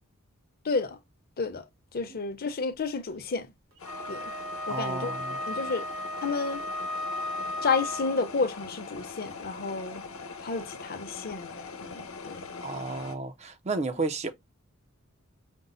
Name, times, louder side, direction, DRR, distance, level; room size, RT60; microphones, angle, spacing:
voice 1, 0.6-1.0 1.4-1.7 1.9-3.5 4.1-4.3 4.7-5.1 5.5-5.9 6.2-6.6 7.6-10.0 10.4-12.5, left 4 dB, 45° left, 0.7 m, -31 dB
sound 1, 3.8-13.1, left 4 dB, 75° left, 1.0 m, -42 dB
Wind instrument woodwind instrument, 3.8-8.4, left 1 dB, 75° right, 1.5 m, -35 dB
voice 2, 4.7-5.4 12.6-14.3, right 3 dB, 30° right, 0.5 m, -32 dB
5.2 x 2.0 x 3.8 m
head